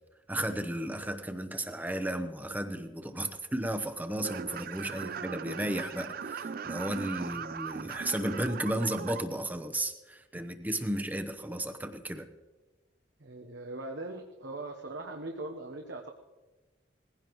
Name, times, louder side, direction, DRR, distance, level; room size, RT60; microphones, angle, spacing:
voice 1, 0.3-12.3, right 1 dB, 10° right, 6 dB, 0.9 m, -34 dB
sound 1, 4.2-9.2, right 6 dB, 50° right, 0.4 m, -39 dB
voice 2, 13.2-16.1, right 2 dB, 75° right, 2 dB, 1.0 m, -41 dB
20.0 x 15.5 x 3.1 m, 1.2 s
head